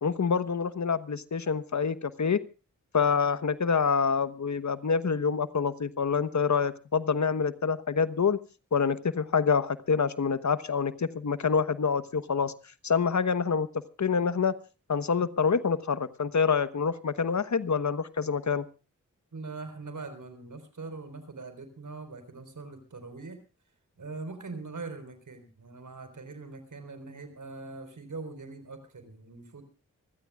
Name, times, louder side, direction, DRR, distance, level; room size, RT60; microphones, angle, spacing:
voice 1, 0.0-2.4 2.9-8.4 8.7-12.5 12.8-13.7 14.0-14.5 14.9-18.6, left 5 dB, 65° left, 14 dB, 1.2 m, -26 dB
voice 2, 19.3-23.4 24.0-29.6, right 3 dB, 70° right, 9 dB, 4.5 m, -42 dB
26.0 x 15.5 x 2.4 m, 0.34 s
cardioid pair, 45°, 31 cm